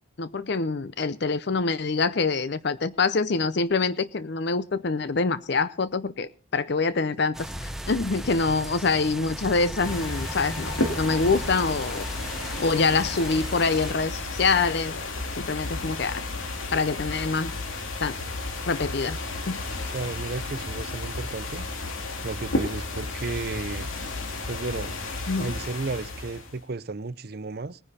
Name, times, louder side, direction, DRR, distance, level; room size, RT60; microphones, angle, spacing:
voice 1, 0.2-12.0 12.6-15.1 15.4-16.2 16.7-17.5 18.0-18.2 18.7-19.2 19.5-19.6 25.3-25.5, left 4 dB, 55° left, 0.6 m, -25 dB
sound 1, 7.3-13.9, equal, ahead, 0.7 m, -36 dB
sound 2, 9.8-26.6, left 2 dB, 80° left, 2.5 m, -33 dB
voice 2, 19.9-21.6 22.2-23.9 24.5-25.0 25.4-27.8, right 3 dB, 50° right, 0.6 m, -33 dB
19.5 x 10.0 x 4.2 m
head